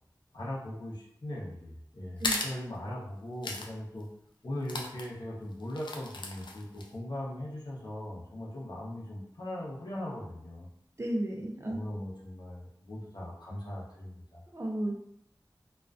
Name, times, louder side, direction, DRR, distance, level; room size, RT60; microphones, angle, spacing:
voice 1, 0.3-4.1 4.4-10.7 11.6-14.4, left 1 dB, 65° left, -5 dB, 0.8 m, -39 dB
sound 1, 2.2-2.5 3.4-3.7 4.0-4.1 4.6-5.1 5.7-6.9, left 2 dB, 80° left, 0.3 m, -35 dB
voice 2, 11.0-11.8 14.5-14.9, right 1 dB, 35° right, 0 dB, 0.5 m, -33 dB
2.4 x 2.2 x 2.4 m, 0.75 s
wide cardioid pair, 40°, 8 cm